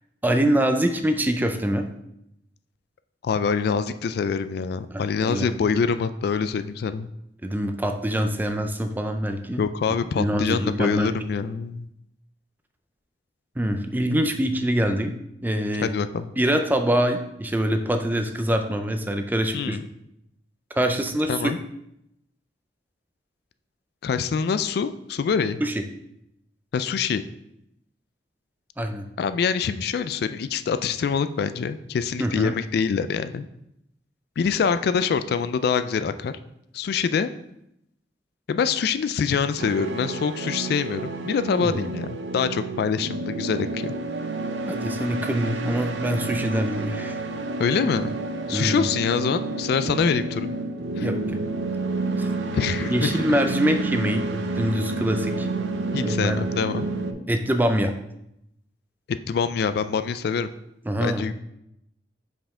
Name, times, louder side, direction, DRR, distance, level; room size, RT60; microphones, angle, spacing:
voice 1, 0.2-1.9 4.9-5.5 7.4-9.6 10.2-11.2 13.6-15.1 15.4-15.9 16.4-19.8 20.7-21.5 25.6-25.8 28.8-29.1 32.2-32.5 41.6-41.8 44.7-47.1 48.5-48.9 50.9-51.4 52.2-52.3 52.9-55.5 55.9-56.4 57.3-57.9 60.9-61.3, equal, 10° right, 6 dB, 0.4 m, -24 dB
voice 2, 3.2-7.1 9.6-11.8 15.8-16.3 19.5-19.8 21.3-21.6 24.0-25.6 26.7-27.2 29.2-33.5 34.4-36.3 36.7-37.3 38.5-43.9 47.6-48.1 48.5-50.5 51.0-51.1 52.5-53.2 55.9-56.9 59.3-60.5 61.0-61.3, left 6 dB, 60° left, 12 dB, 0.3 m, -25 dB
sound 1, 39.6-57.1, right 2 dB, 90° right, 0.6 m, -29 dB
5.4 x 5.0 x 3.6 m, 0.80 s
head